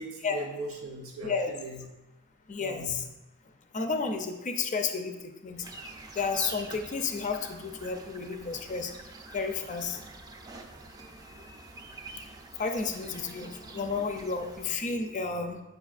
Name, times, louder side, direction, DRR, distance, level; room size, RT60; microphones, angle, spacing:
voice 1, 0.0-1.9 2.6-3.0, right 2 dB, 85° right, -1 dB, 0.7 m, -39 dB
voice 2, 2.5-3.0 3.7-5.1 5.4-5.6 6.2-8.9 9.3-10.0 12.6-15.6, left 4 dB, 35° left, 5 dB, 0.5 m, -31 dB
sound 1, 5.6-14.8, right 2 dB, 20° right, 0.5 m, -46 dB
8.1 x 5.5 x 2.4 m, 1.0 s
head